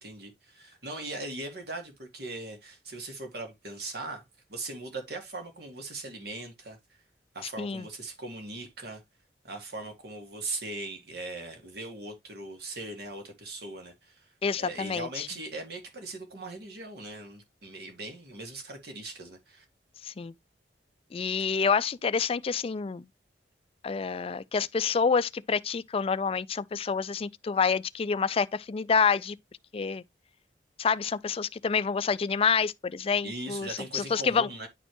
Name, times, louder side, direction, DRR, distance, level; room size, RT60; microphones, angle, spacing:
voice 1, 0.0-4.2 4.5-6.8 7.3-9.0 9.4-14.3 14.6-19.6 33.2-34.7, right 2 dB, 60° right, 2.0 m, -39 dB
voice 2, 14.4-15.3 20.0-20.3 21.1-23.1 23.8-29.4 29.7-30.0 30.8-34.5, left 5 dB, 30° left, 0.3 m, -28 dB
9.9 x 4.2 x 3.0 m
head